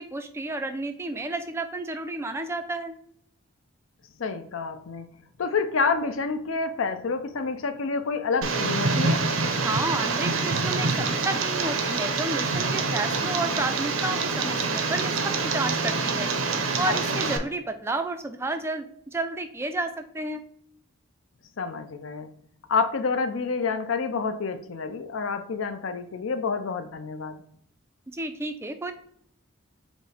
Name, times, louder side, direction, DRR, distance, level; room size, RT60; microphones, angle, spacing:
voice 1, 0.0-2.9 9.6-16.3 16.8-20.4 28.1-28.9, right 2 dB, 10° right, 8 dB, 0.3 m, -31 dB
voice 2, 4.2-5.1 5.4-9.2 16.9-17.3 21.6-22.3 22.7-27.4, left 4 dB, 70° left, 9 dB, 0.5 m, -28 dB
Tick, 8.4-17.4, right 4 dB, 80° right, 0.6 m, -26 dB
5.1 x 2.1 x 4.8 m, 0.68 s
head